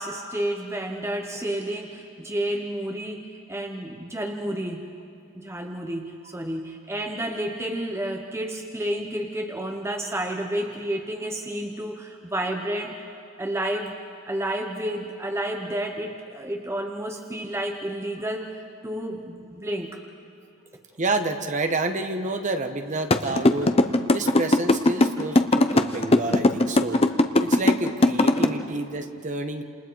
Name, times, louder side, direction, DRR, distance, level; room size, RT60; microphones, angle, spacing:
voice 1, 0.0-4.8 5.3-13.0 13.4-14.0 14.3-20.0, right 1 dB, 10° right, 3 dB, 0.9 m, -30 dB
voice 2, 21.0-23.7 24.1-27.0 27.4-29.6, right 2 dB, 35° right, 6 dB, 1.3 m, -29 dB
sound 1, 23.1-28.4, left 2 dB, 30° left, 0.8 m, -18 dB
29.0 x 28.0 x 4.7 m, 2.6 s
head